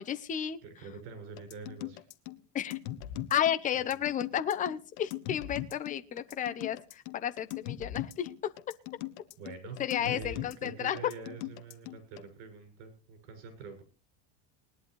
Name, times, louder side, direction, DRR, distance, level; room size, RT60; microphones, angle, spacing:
voice 1, 0.0-0.6 2.5-2.8 3.3-8.3 9.8-11.0, left 10 dB, 20° left, 10 dB, 0.9 m, -32 dB
voice 2, 0.6-2.1 9.4-13.8, right 5 dB, 70° right, 6 dB, 6.9 m, -45 dB
sound 1, 1.4-12.2, left 14 dB, 60° left, 1.4 m, -40 dB
20.5 x 11.5 x 3.2 m, 0.34 s
cardioid pair, 160°, 35 cm